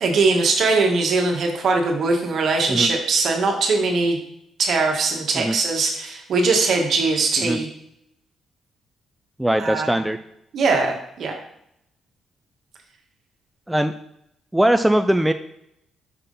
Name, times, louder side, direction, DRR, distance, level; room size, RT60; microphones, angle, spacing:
voice 1, 0.0-4.2 4.6-7.7 9.6-9.9 10.5-11.3, right 3 dB, 60° right, 2 dB, 1.4 m, -21 dB
voice 2, 9.4-10.2 13.7-13.9 14.5-15.3, right 1 dB, 5° right, 8 dB, 0.3 m, -20 dB
5.7 x 3.6 x 5.3 m, 0.75 s
cardioid pair, 90°, 0 cm